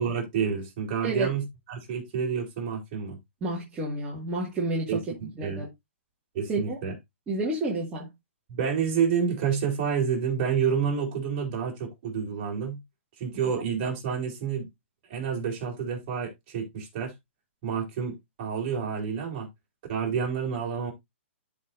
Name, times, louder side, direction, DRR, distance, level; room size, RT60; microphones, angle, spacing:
voice 1, 0.0-3.2 4.9-5.6 6.3-6.9 8.5-12.8 13.2-14.7 15.1-17.1 17.6-19.5 19.9-20.9, right 6 dB, 35° right, 3.5 m, -29 dB
voice 2, 3.4-5.0 5.4-5.7 6.5-6.8 7.3-8.1, right 2 dB, 15° right, 2.1 m, -30 dB
13.0 x 4.4 x 2.6 m
hypercardioid pair, 155°, 7 cm